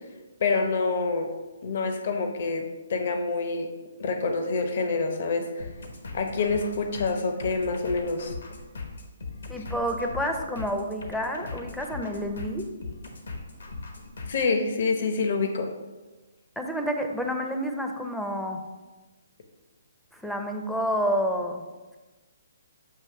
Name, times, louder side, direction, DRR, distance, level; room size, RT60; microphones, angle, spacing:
voice 1, 0.4-1.3 1.6-3.7 4.0-5.7 6.1-8.3 14.3-15.7, left 4 dB, 55° left, 5 dB, 0.9 m, -27 dB
sound 1, 5.6-14.5, left 3 dB, 75° left, 1.2 m, -39 dB
voice 2, 9.5-12.7 16.6-18.6 20.1-21.6, equal, ahead, 3 dB, 0.6 m, -29 dB
7.7 x 2.8 x 5.7 m, 1.2 s
hypercardioid pair, 145°, 0 cm